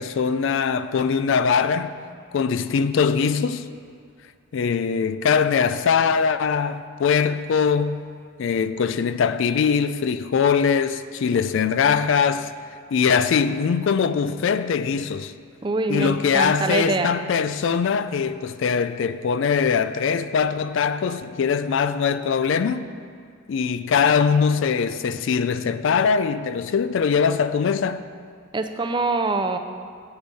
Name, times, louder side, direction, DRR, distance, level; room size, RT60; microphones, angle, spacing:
voice 1, 0.0-2.0 2.3-3.7 4.5-8.0 8.4-12.5 12.9-15.3 15.9-22.9 23.5-28.0, left 6 dB, 60° left, 0.3 m, -22 dB
voice 2, 15.6-17.1 28.5-29.6, right 3 dB, 20° right, 0.4 m, -24 dB
9.7 x 8.6 x 4.1 m
head